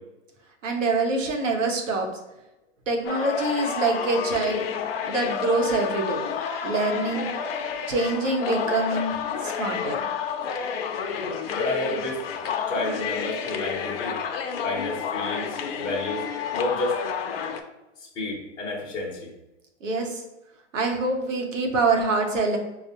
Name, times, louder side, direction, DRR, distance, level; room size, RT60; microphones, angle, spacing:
voice 1, 0.6-2.1 2.9-4.7 5.0-6.2 6.6-7.3 7.9-9.1 9.4-10.0 19.8-20.2 20.7-22.6, right 3 dB, 90° right, 2 dB, 0.9 m, -25 dB
sound 1, 3.0-17.6, left 7 dB, 55° left, 0.5 m, -30 dB
voice 2, 11.5-12.2 12.7-14.2 14.6-15.5 15.8-16.2 16.5-17.0 18.2-19.3, left 2 dB, 10° left, -4 dB, 0.7 m, -30 dB
4.7 x 2.0 x 2.7 m, 0.95 s
hypercardioid pair, 140°, 37 cm